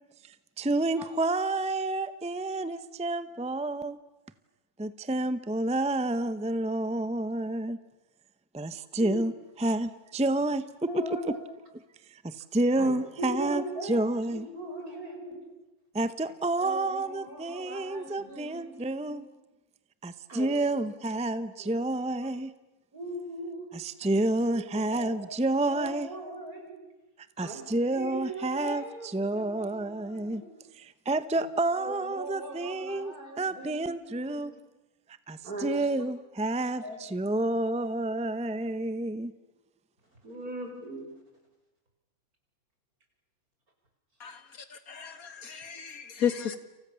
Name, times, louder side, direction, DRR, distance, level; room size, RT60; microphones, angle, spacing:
voice 1, 0.2-4.0 4.8-7.8 8.5-9.3 9.6-10.6 12.1-14.5 15.9-19.2 20.0-22.5 23.7-26.1 27.4-28.8 29.1-30.4 30.7-34.5 35.3-39.3, right 2 dB, 5° right, 0.8 m, -29 dB
voice 2, 10.9-11.4 12.8-15.5 16.6-19.2 20.3-20.5 20.8-21.0 21.6-21.7 22.9-23.7 24.0-24.1 24.5-25.4 25.7-26.8 27.4-27.6 27.9-30.5 31.4-31.5 31.8-34.5 35.4-35.9 36.8-37.0 37.5-37.6 40.2-41.1, right 1 dB, 75° right, 6.9 m, -40 dB
voice 3, 44.2-46.6, left 8 dB, 70° left, 2.4 m, -33 dB
30.0 x 28.0 x 7.1 m
omnidirectional pair, 1.6 m